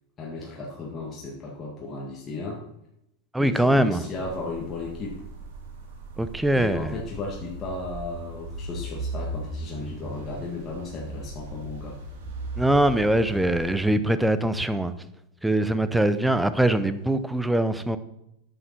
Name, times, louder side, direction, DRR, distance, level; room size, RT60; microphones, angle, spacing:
voice 1, 0.2-2.6 3.4-5.2 6.5-12.0, left 3 dB, 25° left, -3 dB, 1.8 m, -35 dB
voice 2, 3.3-4.0 6.2-6.9 12.6-14.9 15.4-18.0, right 1 dB, 5° right, 12 dB, 0.6 m, -22 dB
sound 1, 4.1-13.9, right 1 dB, 75° right, 2.5 m, -37 dB
9.1 x 6.4 x 5.8 m, 0.83 s
supercardioid pair, 130°, 0 cm